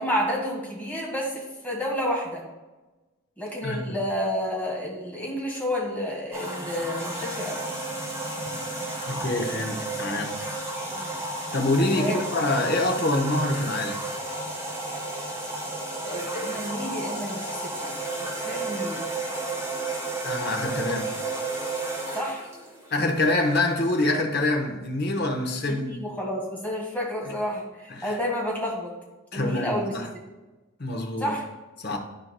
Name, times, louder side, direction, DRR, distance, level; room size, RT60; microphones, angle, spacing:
voice 1, 0.0-2.4 3.4-7.6 10.9-11.2 12.0-12.2 16.0-18.0 18.4-19.0 22.1-22.5 25.7-28.9 29.3-29.9 31.2-31.5, equal, 10° left, 1.8 m, -30 dB
voice 2, 3.6-4.0 9.1-10.4 11.5-14.1 20.2-21.1 22.9-25.9 27.2-27.3 27.9-28.2 29.3-30.1 30.8-31.3 31.8-32.0, left 2 dB, 50° left, 1.0 m, -26 dB
sound 1, 6.3-24.0, right 2 dB, 10° right, 1.8 m, -32 dB
13.0 x 4.7 x 2.2 m
head